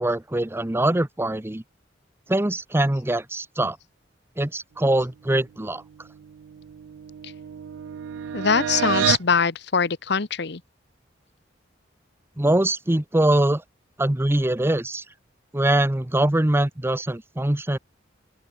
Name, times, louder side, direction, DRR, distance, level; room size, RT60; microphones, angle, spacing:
voice 1, 0.0-1.6 2.3-3.8 4.4-5.8 12.4-13.6 14.0-15.0 15.5-17.8, right 1 dB, 15° right, 0.7 m, -23 dB
sound 1, 6.2-9.3, right 9 dB, 85° right, 0.3 m, -29 dB
voice 2, 8.3-10.6, left 5 dB, 65° left, 1.1 m, -22 dB
open air
head